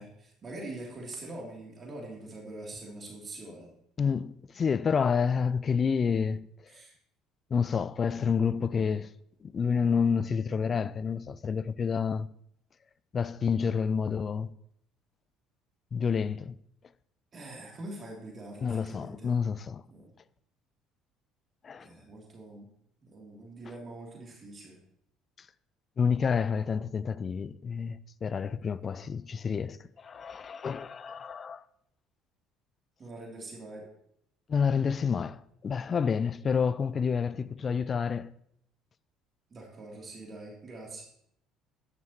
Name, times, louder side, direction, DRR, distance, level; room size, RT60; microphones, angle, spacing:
voice 1, 0.0-3.7 6.7-6.9 17.3-19.3 19.9-20.1 21.8-22.7 23.0-24.8 33.0-33.9 39.5-41.0, right 2 dB, 35° right, 3.1 m, -44 dB
voice 2, 4.0-6.5 7.5-9.1 9.4-12.3 13.1-14.5 15.9-16.6 18.6-19.8 21.6-21.9 26.0-31.6 34.5-38.3, left 6 dB, 35° left, 0.4 m, -29 dB
12.0 x 11.0 x 3.0 m
figure-of-eight pair, 55°, 0 cm